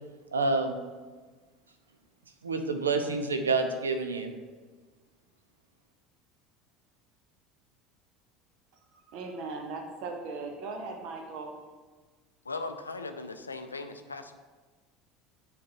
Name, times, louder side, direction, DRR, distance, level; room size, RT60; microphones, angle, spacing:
voice 1, 0.3-0.8 2.4-4.3, right 3 dB, 80° right, 7 dB, 0.5 m, -28 dB
voice 2, 8.9-11.5, right 3 dB, 55° right, 4 dB, 0.9 m, -38 dB
voice 3, 12.4-14.3, left 3 dB, 85° left, 7 dB, 0.4 m, -38 dB
9.5 x 3.6 x 2.9 m, 1.4 s
figure-of-eight pair, 70°, 0 cm